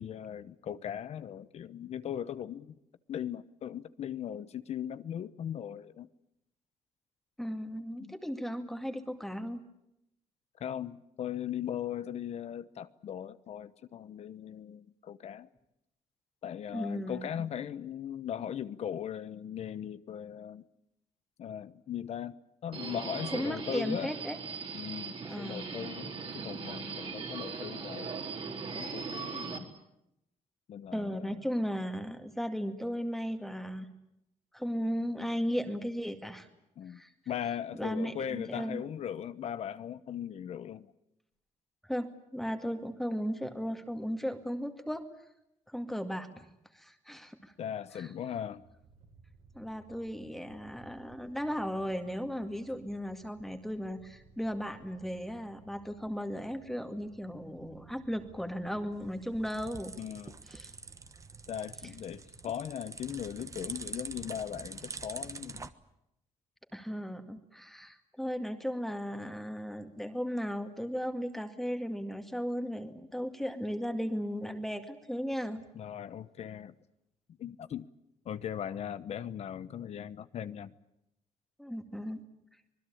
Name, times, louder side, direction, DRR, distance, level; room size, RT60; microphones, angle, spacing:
voice 1, 0.0-2.7 3.1-6.1 8.0-8.1 10.6-15.5 16.4-20.6 21.4-22.3 22.6-24.1 24.7-28.1 28.7-29.7 30.7-31.3 36.8-37.0 37.3-40.9 47.6-48.6 60.0-60.4 61.5-65.7 75.7-76.7 77.4-77.9 78.2-80.7, left 9 dB, 60° left, 13 dB, 1.0 m, -39 dB
voice 2, 7.4-9.6 16.7-17.2 23.3-24.4 25.2-25.9 30.9-33.9 34.5-36.5 36.9-37.1 37.7-38.8 41.8-45.0 45.7-46.5 46.7-47.5 47.9-48.1 49.5-59.9 60.5-60.7 66.7-75.6 81.6-82.2, equal, ahead, 6 dB, 2.2 m, -36 dB
Subway metro underground, 22.7-29.6, right 5 dB, 50° right, 3.9 m, -39 dB
sound 1, 48.5-62.5, right 4 dB, 75° right, 7.2 m, -59 dB
sound 2, 58.9-65.7, right 4 dB, 25° right, 1.2 m, -45 dB
26.0 x 20.5 x 8.6 m, 0.83 s
cardioid pair, 125°, 12 cm